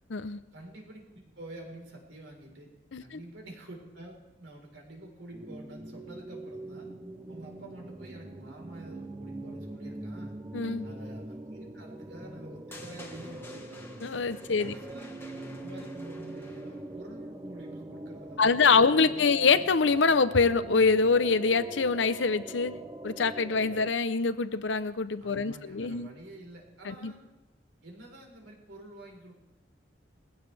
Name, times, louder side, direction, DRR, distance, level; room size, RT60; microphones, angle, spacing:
voice 1, 0.5-2.7 3.0-6.9 7.3-10.3 10.8-13.8 14.5-15.3 15.6-19.3 25.2-27.2 27.8-29.3, right 1 dB, 80° right, 0 dB, 4.2 m, -48 dB
sound 1, 5.3-23.9, right 2 dB, 20° right, 0.7 m, -43 dB
voice 2, 10.5-10.9 14.0-14.7 18.4-22.7 23.0-26.1 26.8-27.1, left 4 dB, 80° left, 13 dB, 0.7 m, -25 dB
sound 2, 12.7-17.0, left 1 dB, 15° left, 1.5 m, -49 dB
20.0 x 16.0 x 3.4 m, 1.1 s
head